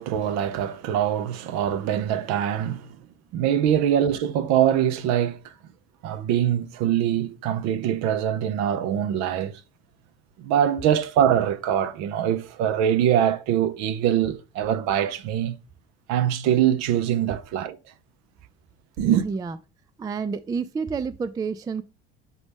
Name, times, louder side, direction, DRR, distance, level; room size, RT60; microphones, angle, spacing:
voice 1, 0.0-3.0 3.3-5.5 6.0-9.6 10.4-15.6 16.1-17.8 19.0-19.3, right 10 dB, 50° right, 0.8 m, -23 dB
voice 2, 19.2-19.6 20.0-21.8, right 5 dB, 10° right, 0.4 m, -29 dB
8.3 x 4.0 x 3.4 m
figure-of-eight pair, 65°, 34 cm